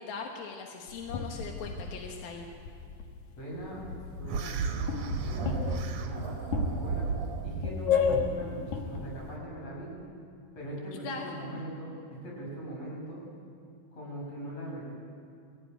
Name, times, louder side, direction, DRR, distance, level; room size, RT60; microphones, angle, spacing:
voice 1, 0.0-2.5 11.0-11.5, left 5 dB, 90° left, 1 dB, 3.3 m, -40 dB
sound 1, 0.9-3.2 3.5-9.4, left 6 dB, 65° left, 2.7 m, -33 dB
voice 2, 3.4-3.8 4.2-7.1 7.4-9.9 10.5-13.2 13.9-14.9, right 1 dB, 45° left, -4 dB, 7.9 m, -41 dB
sound 2, 4.3-7.7, right 5 dB, 60° right, 2.1 m, -34 dB
22.0 x 16.5 x 9.1 m, 2.4 s
omnidirectional pair, 4.1 m